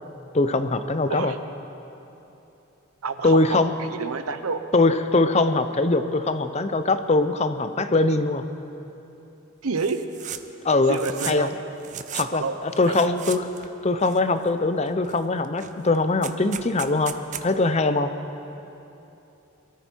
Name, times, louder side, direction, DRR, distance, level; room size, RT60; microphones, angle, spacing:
voice 1, 0.3-1.3 3.2-3.7 4.7-8.4 10.6-11.0 11.3-11.5 12.1-13.5 13.8-18.1, left 2 dB, 30° left, 10 dB, 0.5 m, -22 dB
voice 2, 3.0-4.6 9.6-10.0 10.9-11.6 12.4-12.6 12.9-13.1, right 4 dB, 80° right, 9 dB, 0.9 m, -29 dB
sound 1, 9.8-10.4 10.7-11.5 11.8-12.3 12.8-13.7 14.0-14.6 15.0-15.2 15.4-17.5, right 9 dB, 35° right, 0.5 m, -36 dB
23.0 x 13.5 x 4.6 m, 3.0 s
head